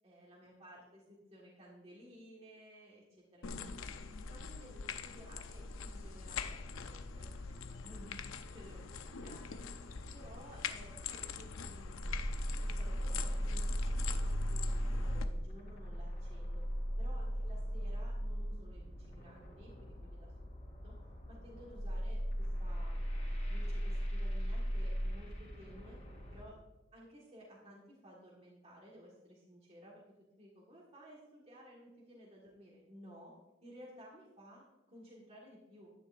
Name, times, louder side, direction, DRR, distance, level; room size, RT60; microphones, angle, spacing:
voice 1, 0.0-3.5 3.8-3.9 4.3-8.3 8.5-9.6 10.1-16.6 17.0-20.3 20.8-20.9 21.3-23.0 23.5-26.0 26.3-26.6 26.9-30.0 30.4-33.3 33.6-35.9, equal, 30° right, -4 dB, 1.7 m, -56 dB
sound 1, 3.4-15.3, left 5 dB, 75° left, 0.6 m, -43 dB
sound 2, 12.0-26.4, equal, 30° left, 3.3 m, -37 dB
11.0 x 9.4 x 2.6 m, 1.0 s
head